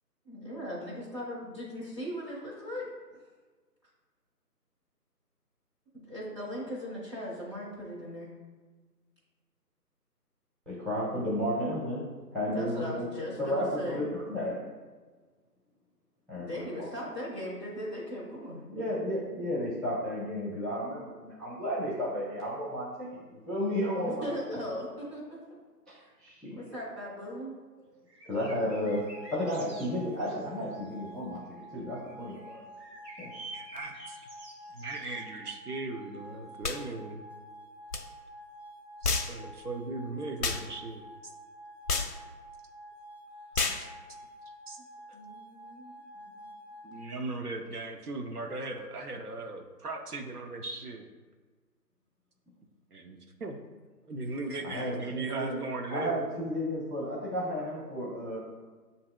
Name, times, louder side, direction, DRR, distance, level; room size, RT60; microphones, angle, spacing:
voice 1, 0.2-2.9 5.9-8.3 12.5-14.0 16.4-18.6 24.1-25.2 26.0-26.1 26.5-27.6 45.1-46.5, equal, 20° right, -10 dB, 0.9 m, -39 dB
voice 2, 10.7-12.1 12.3-13.1 13.4-14.6 16.3-16.9 18.7-24.6 25.9-26.7 27.8-27.9 28.2-31.4 31.7-32.6 33.2-33.3 54.6-55.6 55.9-58.4, equal, ahead, -8 dB, 0.4 m, -33 dB
sound 1, 28.1-30.9 31.9-35.5, right 2 dB, 90° right, 1.3 m, -49 dB
sound 2, 28.6-47.1, equal, 40° right, 1.2 m, -49 dB
voice 3, 33.5-34.2 34.7-37.2 39.0-41.0 43.5-43.9 44.7-44.8 45.1-45.2 46.8-51.0 52.9-53.6 54.1-56.2, right 3 dB, 65° right, 3 dB, 0.7 m, -38 dB
sound 3, 36.6-36.8 37.9-38.0 39.0-39.3 40.4-40.6 41.9-42.1 43.5-43.8, left 4 dB, 65° left, 0.6 m, -29 dB
7.4 x 2.7 x 2.2 m, 1.4 s
figure-of-eight pair, 155°, 49 cm